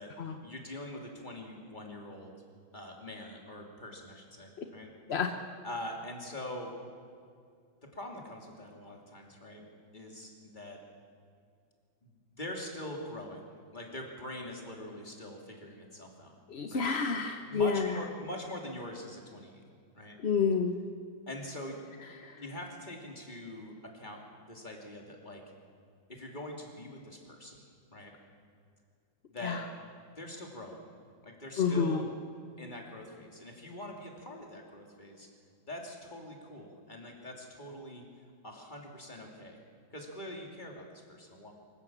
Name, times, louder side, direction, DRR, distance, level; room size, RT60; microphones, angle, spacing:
voice 1, 0.4-2.3 2.7-4.9 5.6-6.8 7.8-9.6 9.9-10.8 12.0-13.4 13.7-16.4 16.7-16.9 17.5-19.6 19.9-20.2 21.3-21.8 22.4-25.4 26.1-27.6 27.9-28.1 29.3-29.7 30.2-30.8 31.2-32.1 32.6-35.3 35.7-38.1 38.4-39.6 39.9-41.5, left 1 dB, 20° left, 0 dB, 3.1 m, -43 dB
voice 2, 16.5-17.9 20.2-20.7 22.2-22.4 29.4-29.6 31.6-32.0, left 5 dB, 45° left, 5 dB, 0.9 m, -29 dB
25.0 x 16.0 x 7.4 m, 2.2 s
omnidirectional pair, 2.2 m